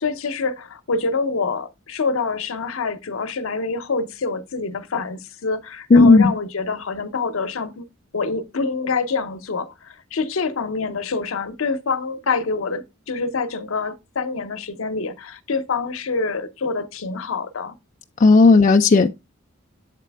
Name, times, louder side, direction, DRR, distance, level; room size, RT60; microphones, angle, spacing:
voice 1, 0.0-7.9 8.1-17.8, left 4 dB, 80° left, 0.7 m, -26 dB
voice 2, 5.9-6.3 18.2-19.1, left 3 dB, 35° left, 0.3 m, -12 dB
7.5 x 4.1 x 3.4 m
head